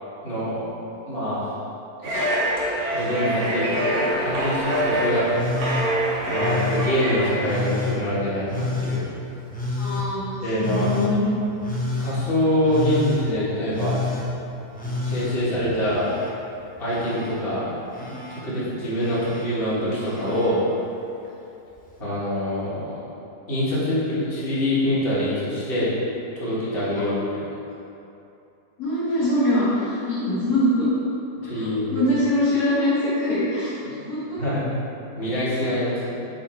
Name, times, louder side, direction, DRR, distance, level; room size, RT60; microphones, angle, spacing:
voice 1, 0.2-0.6 1.1-1.6 2.0-2.4 2.9-5.3 6.3-9.0 10.4-10.9 12.0-14.0 14.7-16.1 16.8-17.7 18.0-20.6 22.0-23.0 23.5-25.9 26.4-27.5 31.4-32.1 34.4-34.7 35.2-36.3, left 1 dB, 35° left, -10 dB, 1.8 m, -25 dB
sound 1, 2.0-7.6, equal, 60° right, 1.7 m, -25 dB
Telephone, 5.3-5.9 6.4-6.9 7.4-8.0 8.5-9.0 9.5-10.1 10.6-11.1 11.6-12.2 12.6-13.2 13.7-14.3 14.7-16.3 16.6-17.4 17.9-18.4 19.0-19.5 20.0-20.5 21.7-21.8, left 2 dB, 10° left, 0.4 m, -29 dB
voice 2, 9.8-11.3 26.9-27.1 28.8-30.9 31.4-34.4, left 1 dB, 65° left, -9 dB, 2.0 m, -23 dB
7.5 x 3.5 x 4.4 m, 2.8 s
omnidirectional pair, 1.8 m